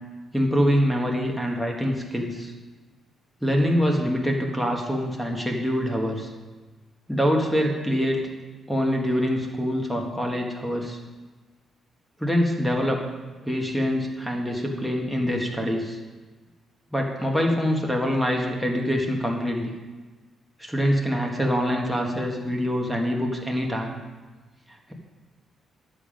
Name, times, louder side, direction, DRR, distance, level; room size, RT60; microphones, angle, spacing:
voice 1, 0.3-2.5 3.4-6.3 7.1-8.2 8.7-11.0 12.2-13.0 13.4-16.0 16.9-19.7 20.6-24.0 24.7-24.9, equal, ahead, 1 dB, 1.5 m, -25 dB
11.0 x 7.0 x 5.2 m, 1.3 s
cardioid pair, 105°, 0 cm